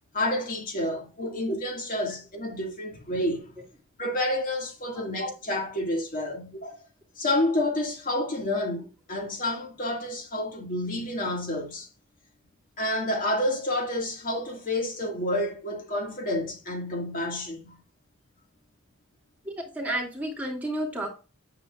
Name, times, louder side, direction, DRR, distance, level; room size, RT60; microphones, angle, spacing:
voice 1, 0.1-3.5 4.0-6.8 7.2-11.9 12.8-17.8, left 1 dB, 40° left, 1.9 m, -29 dB
voice 2, 19.4-21.1, right 1 dB, 5° right, 2.6 m, -31 dB
8.7 x 8.5 x 2.4 m
head